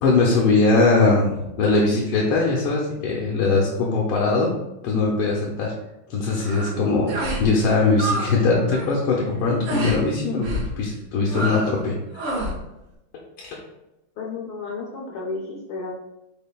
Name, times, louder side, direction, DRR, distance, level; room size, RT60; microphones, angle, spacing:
voice 1, 0.0-4.5 4.8-5.7 6.1-7.1 7.4-10.5 10.8-12.3 13.4-13.6, left 3 dB, 85° left, -2 dB, 1.6 m, -21 dB
sound 1, 6.4-6.7 7.1-7.5 7.7-8.3 8.6-8.9 9.6-10.0 10.4-10.7 11.3-11.8 12.1-12.6, right 2 dB, 65° right, 1.6 m, -28 dB
voice 2, 14.2-15.9, left 3 dB, 65° left, -2 dB, 1.0 m, -32 dB
5.4 x 4.1 x 2.2 m, 0.93 s
omnidirectional pair, 2.3 m